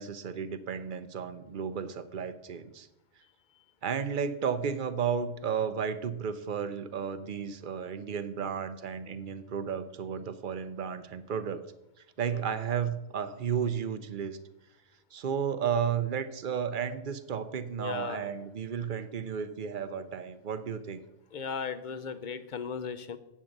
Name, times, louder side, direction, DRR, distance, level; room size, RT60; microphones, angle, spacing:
voice 1, 0.0-2.9 3.8-11.7 12.2-14.4 15.1-21.0, right 7 dB, 50° right, 12 dB, 0.7 m, -33 dB
voice 2, 17.8-18.4 21.3-23.2, left 6 dB, 50° left, 12 dB, 0.7 m, -36 dB
8.6 x 7.3 x 6.5 m, 0.92 s
omnidirectional pair, 1.3 m